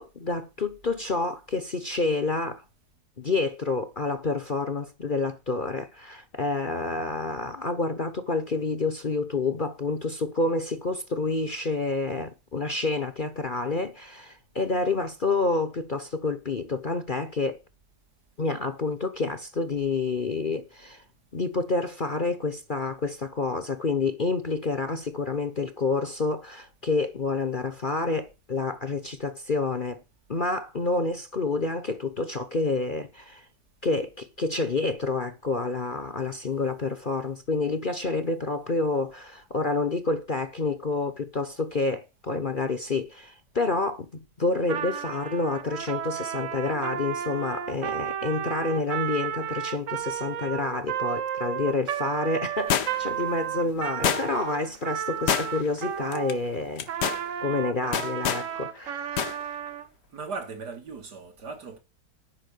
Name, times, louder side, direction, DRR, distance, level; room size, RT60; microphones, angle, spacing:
voice 1, 0.0-2.6 3.2-17.6 18.4-21.0 21.3-30.0 30.3-33.4 33.8-56.9 57.4-59.2, left 3 dB, 35° left, 0.9 m, -28 dB
Trumpet, 44.6-56.4 56.9-59.9, right 9 dB, 55° right, 1.0 m, -33 dB
sound 1, 52.7-53.2 54.0-54.5 55.3-55.8 56.1-56.3 56.8-57.2 57.9-58.5 59.2-59.4 59.7-59.8, left 8 dB, 75° left, 1.6 m, -26 dB
voice 2, 60.1-61.8, right 4 dB, 70° right, 2.5 m, -37 dB
10.5 x 5.6 x 8.3 m
omnidirectional pair, 1.8 m